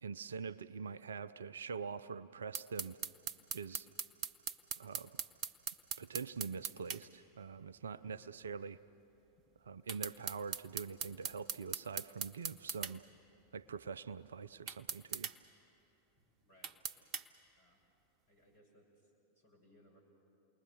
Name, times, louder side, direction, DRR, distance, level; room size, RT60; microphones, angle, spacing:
voice 1, 0.0-3.0 3.5-3.9 4.8-5.1 6.0-8.8 9.7-13.0 13.5-15.3, right 5 dB, 70° right, 16 dB, 0.5 m, -44 dB
sound 1, 2.5-7.0 9.9-12.9 14.7-15.4 16.6-17.3, right 7 dB, 30° right, 0.9 m, -40 dB
voice 2, 7.9-8.3 16.4-17.1 17.6-17.8 18.3-18.9 19.4-20.0, left 1 dB, 65° left, -2 dB, 7.2 m, -66 dB
29.0 x 21.0 x 6.7 m, 2.9 s
figure-of-eight pair, 90°, 0 cm